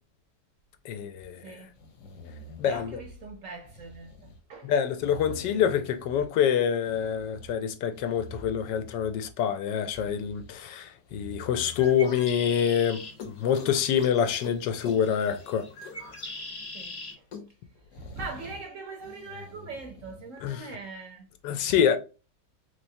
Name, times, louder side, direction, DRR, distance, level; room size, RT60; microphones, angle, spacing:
voice 1, 0.8-1.6 2.6-3.0 4.6-15.7 16.0-16.1 20.4-20.7 21.4-22.0, left 8 dB, 85° left, 1.3 m, -26 dB
sound 1, 1.2-1.3 1.7-3.2 3.6-4.4 4.8-6.3 6.8-7.5 7.9-9.3 9.7-10.6 11.1-11.9 12.4-12.6 12.9-13.0 13.2-14.1 14.4-14.6 14.8-16.1 16.5-16.6 16.8-16.9 17.1-18.6 19.0-20.3, left 2 dB, 60° left, 1.1 m, -46 dB
voice 2, 1.4-1.8 2.6-4.7 8.3-8.4 16.7-17.2 18.0-21.3, right 3 dB, 70° right, 0.8 m, -42 dB
Bird, 11.6-17.1, left 2 dB, 45° left, 1.1 m, -42 dB
3.4 x 3.2 x 2.6 m
omnidirectional pair, 1.9 m